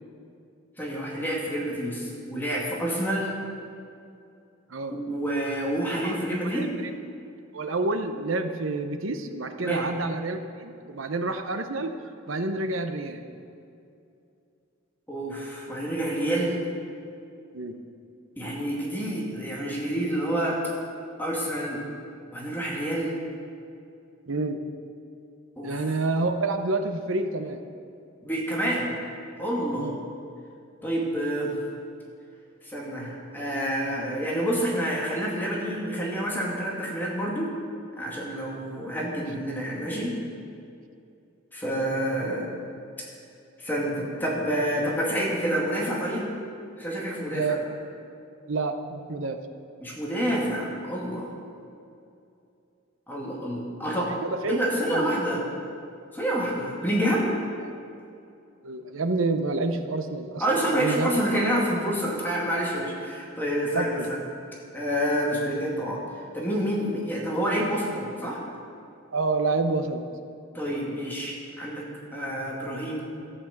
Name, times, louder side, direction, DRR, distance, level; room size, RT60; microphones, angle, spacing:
voice 1, 0.8-3.3 4.9-6.7 9.6-9.8 15.1-16.6 18.4-20.6 21.2-21.8 22.3-23.1 25.6-25.9 28.2-28.9 29.4-30.0 30.8-31.6 32.6-37.5 38.0-40.2 41.5-42.5 43.6-46.3 46.8-47.6 49.8-51.3 53.1-54.1 54.5-55.4 56.1-57.3 60.4-64.2 64.7-66.0 66.3-68.4 70.5-71.8 72.1-73.0, right 1 dB, 10° left, -4 dB, 2.1 m, -28 dB
voice 2, 7.5-12.0 12.3-13.2 17.5-17.8 24.3-24.6 25.6-27.6 29.8-30.0 47.3-47.6 48.5-49.4 54.2-54.6 54.9-55.0 57.6-57.7 58.6-60.4 60.7-61.1 63.7-64.1 69.1-70.0, right 3 dB, 75° right, 8 dB, 0.8 m, -28 dB
13.5 x 6.2 x 7.7 m, 2.5 s
head